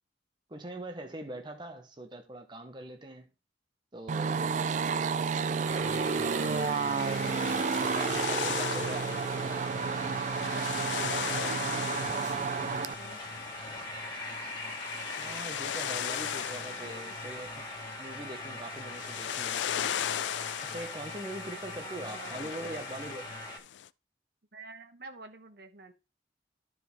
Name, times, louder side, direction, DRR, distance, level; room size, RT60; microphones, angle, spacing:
voice 1, 0.5-3.3 3.9-4.5 5.1-5.5 5.7-6.9 7.8-9.2 15.2-17.7 18.0-19.7 20.6-23.3, right 1 dB, 25° right, 0.8 m, -42 dB
sound 1, 4.1-12.9, right 5 dB, 45° right, 0.3 m, -31 dB
sound 2, 5.6-23.6, left 2 dB, 25° left, 1.8 m, -41 dB
sound 3, 6.4-23.9, left 10 dB, 80° left, 0.4 m, -38 dB
voice 2, 10.6-13.2 16.7-17.2 21.8-22.3 22.6-22.8 24.5-25.9, right 2 dB, 60° right, 1.1 m, -49 dB
12.0 x 4.7 x 3.5 m
head